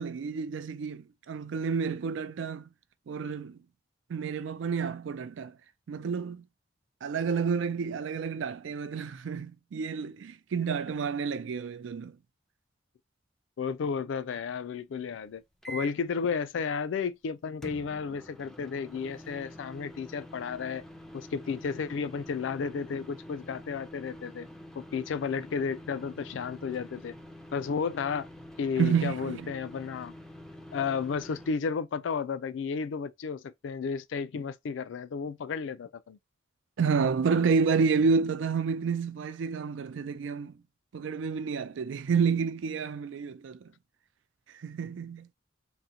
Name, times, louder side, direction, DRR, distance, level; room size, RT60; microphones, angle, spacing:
voice 1, 0.0-2.7 3.1-3.6 4.1-5.6 5.9-6.4 7.0-12.1 28.8-29.5 36.8-40.5 40.9-43.6 44.6-45.3, right 5 dB, 90° right, 0.4 m, -29 dB
voice 2, 13.6-20.8 21.1-24.5 24.8-27.2 27.5-28.3 28.6-30.1 30.7-36.2, left 6 dB, 85° left, 0.4 m, -33 dB
sound 1, 15.6-16.1 17.6-31.5, equal, 5° left, 0.4 m, -47 dB
3.7 x 2.1 x 2.8 m
head